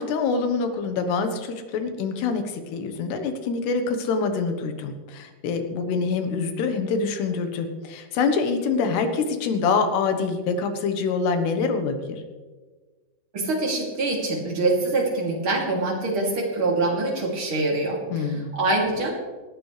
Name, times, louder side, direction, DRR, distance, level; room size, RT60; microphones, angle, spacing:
voice 1, 0.0-12.2 18.1-18.5, left 4 dB, 90° left, 7 dB, 3.3 m, -25 dB
voice 2, 13.3-19.1, right 2 dB, 35° right, -2 dB, 3.3 m, -24 dB
19.5 x 13.0 x 3.3 m, 1.4 s
omnidirectional pair, 4.6 m